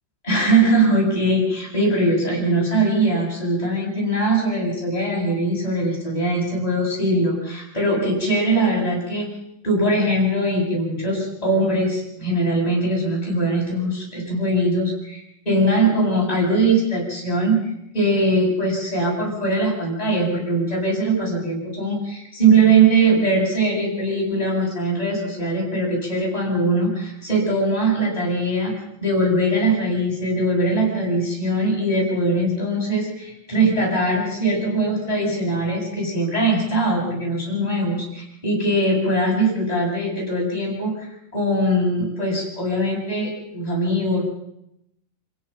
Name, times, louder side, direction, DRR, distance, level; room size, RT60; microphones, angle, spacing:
voice 1, 0.2-9.2 9.6-44.2, right 2 dB, 10° left, -4 dB, 7.9 m, -21 dB
29.0 x 16.5 x 5.9 m, 0.79 s
omnidirectional pair, 4.1 m